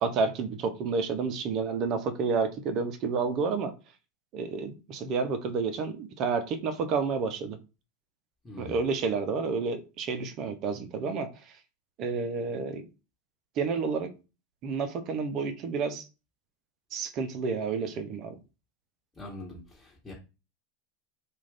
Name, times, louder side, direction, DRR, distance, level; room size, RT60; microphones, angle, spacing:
voice 1, 0.0-3.7 4.3-7.6 8.6-11.3 12.0-12.8 13.6-14.1 14.6-16.0 16.9-18.4, right 5 dB, 45° right, 0.6 m, -30 dB
voice 2, 8.4-8.8 19.1-20.1, left 2 dB, 15° left, 1.2 m, -43 dB
2.4 x 2.4 x 3.3 m
hypercardioid pair, 90°, 0 cm